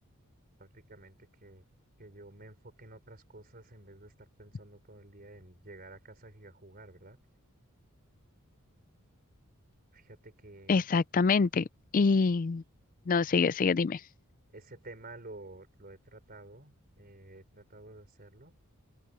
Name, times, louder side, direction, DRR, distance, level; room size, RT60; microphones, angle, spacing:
voice 1, 0.6-1.6 2.0-7.2 8.9-9.1 9.9-10.8 13.5-13.6 14.5-18.5, right 2 dB, 40° right, 4.5 m, -51 dB
voice 2, 10.7-11.7 11.9-12.6 13.1-14.0, left 4 dB, 35° left, 0.4 m, -25 dB
open air
head